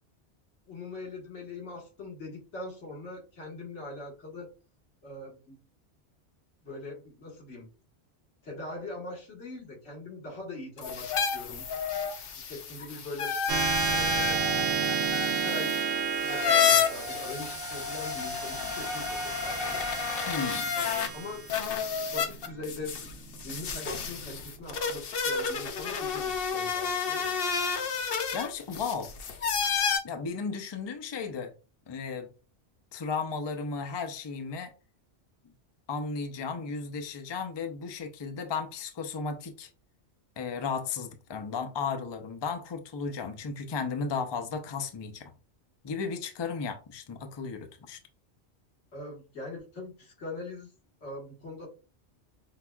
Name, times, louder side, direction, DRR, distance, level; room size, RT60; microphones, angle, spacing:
voice 1, 0.7-4.5 5.0-5.6 6.6-7.7 8.4-11.7 12.4-13.3 13.8-14.6 14.9-15.8 16.2-19.8 20.8-21.4 22.0-23.1 23.4-27.3 48.9-50.7 51.0-51.7, left 2 dB, 85° left, 1.7 m, -42 dB
sound 1, 10.8-21.1 21.5-30.0, left 6 dB, 60° left, 0.8 m, -30 dB
sound 2, 13.5-24.3, right 6 dB, 75° right, 0.8 m, -32 dB
voice 2, 20.3-20.7 28.3-29.1 30.0-31.5 31.9-32.3 32.9-34.7 35.9-39.7 40.4-45.3 45.8-48.0, left 5 dB, 45° left, 0.3 m, -34 dB
5.6 x 2.3 x 2.2 m
omnidirectional pair, 1.2 m